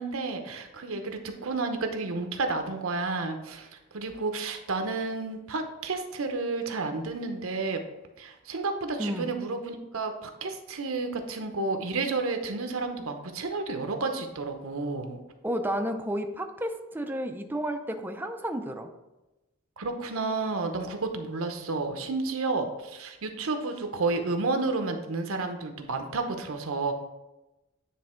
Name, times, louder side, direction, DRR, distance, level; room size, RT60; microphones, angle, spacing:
voice 1, 0.0-7.8 8.2-15.2 19.8-26.9, right 3 dB, 80° right, 6 dB, 0.8 m, -31 dB
voice 2, 9.0-9.3 15.4-18.9, equal, 10° right, 5 dB, 0.5 m, -31 dB
9.4 x 3.5 x 4.4 m, 1.0 s
head